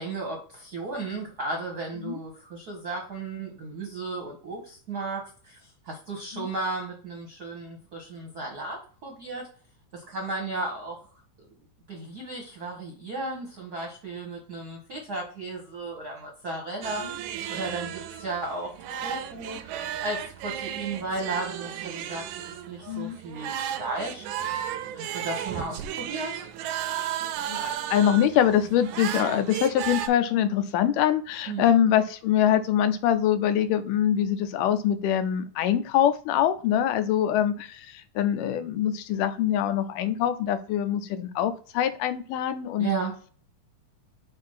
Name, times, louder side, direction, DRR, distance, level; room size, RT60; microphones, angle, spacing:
voice 1, 0.0-9.5 9.9-11.0 11.9-24.2 24.9-26.5 31.5-31.7 42.8-43.1, right 3 dB, 55° right, 0 dB, 1.1 m, -35 dB
sound 1, 16.8-30.1, right 10 dB, 80° right, 1.9 m, -34 dB
voice 2, 22.9-23.2 27.5-42.9, left 10 dB, 85° left, 10 dB, 2.2 m, -24 dB
6.6 x 2.6 x 5.6 m, 0.42 s
omnidirectional pair, 3.7 m